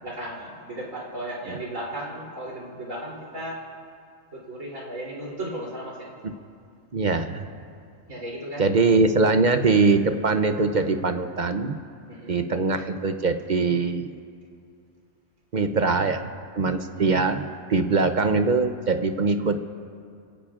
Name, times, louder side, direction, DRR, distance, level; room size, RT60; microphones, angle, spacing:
voice 1, 0.0-3.6 4.3-6.1 8.1-8.7 12.1-12.3 16.9-17.1 17.9-18.0, right 1 dB, 90° right, -5 dB, 3.7 m, -35 dB
voice 2, 6.9-7.5 8.6-11.8 12.3-14.1 15.5-16.3 16.6-17.4 17.7-19.6, right 3 dB, 45° right, 7 dB, 0.7 m, -22 dB
28.0 x 17.5 x 2.5 m, 2.3 s
omnidirectional pair, 1.3 m